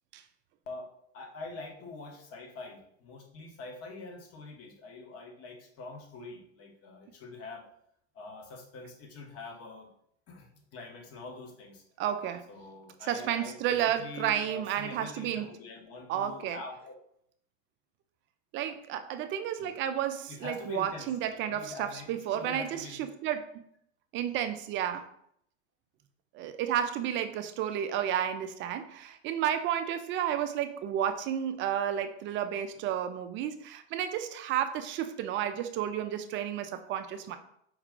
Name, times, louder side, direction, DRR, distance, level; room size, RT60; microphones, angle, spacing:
voice 1, 0.7-7.7 8.1-9.9 10.3-11.8 12.5-17.0 19.6-19.7 20.3-23.2, left 3 dB, 40° left, 3 dB, 1.0 m, -45 dB
voice 2, 12.0-12.5 13.0-15.5 16.1-16.6 18.5-23.6 24.1-25.1 26.3-37.4, right 10 dB, 35° right, 9 dB, 0.4 m, -32 dB
4.7 x 2.3 x 3.6 m, 0.70 s
hypercardioid pair, 100°, 36 cm